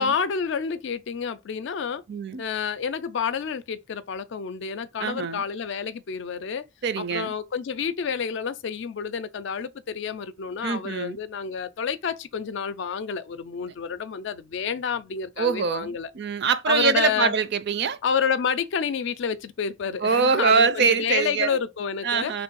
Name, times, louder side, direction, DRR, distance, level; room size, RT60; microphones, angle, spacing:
voice 1, 0.0-2.0 2.4-6.7 7.0-16.1 16.7-17.3 18.0-22.3, left 6 dB, 65° left, 0.4 m, -29 dB
voice 2, 2.1-2.4 5.0-5.4 6.8-7.3 10.6-11.2 15.4-18.0 20.0-21.6 22.0-22.4, right 5 dB, 60° right, 0.5 m, -24 dB
3.3 x 3.1 x 4.5 m
head